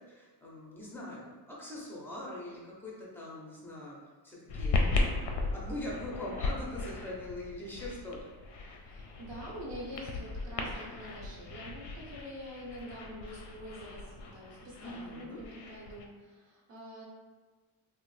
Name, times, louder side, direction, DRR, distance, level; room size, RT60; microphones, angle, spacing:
voice 1, 0.0-4.0 4.2-8.3 14.8-15.4, left 1 dB, 5° left, -4 dB, 0.5 m, -42 dB
sound 1, 4.5-16.0, left 3 dB, 60° left, 0.5 m, -36 dB
voice 2, 8.8-17.0, equal, 60° right, -5 dB, 1.0 m, -45 dB
3.0 x 2.1 x 3.1 m, 1.4 s
cardioid pair, 140°, 49 cm